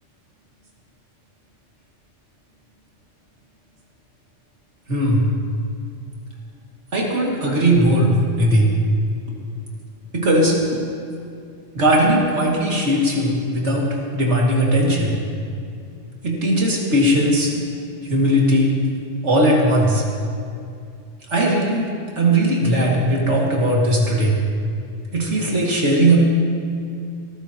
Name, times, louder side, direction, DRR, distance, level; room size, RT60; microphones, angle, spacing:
voice 1, 4.9-5.3 6.9-8.7 10.1-10.6 11.7-15.2 16.2-17.5 18.1-18.7 19.2-20.0 21.3-21.9 22.2-24.3 25.1-26.2, right 1 dB, 70° right, -3 dB, 2.6 m, -18 dB
20.0 x 14.5 x 3.0 m, 2.4 s
omnidirectional pair, 1.3 m